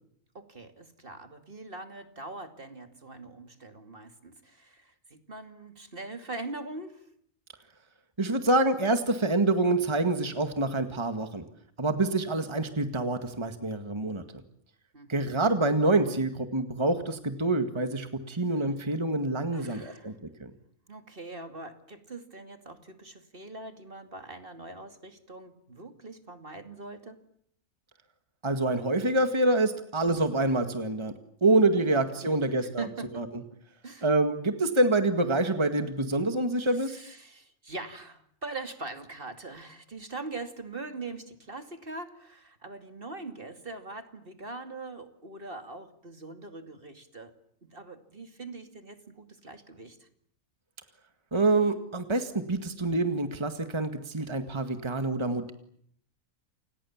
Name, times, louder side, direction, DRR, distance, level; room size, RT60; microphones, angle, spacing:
voice 1, 0.3-7.1 14.9-15.3 19.5-20.2 20.9-27.2 31.8-33.4 33.8-34.1 36.6-47.3 47.6-50.1, right 3 dB, 45° right, 7 dB, 2.6 m, -42 dB
voice 2, 8.2-11.4 11.8-14.2 15.1-20.5 28.4-31.1 31.4-32.9 33.2-33.3 34.0-37.0 51.3-55.5, right 2 dB, 20° right, 7 dB, 1.9 m, -26 dB
29.5 x 27.5 x 7.3 m, 0.67 s
omnidirectional pair, 1.4 m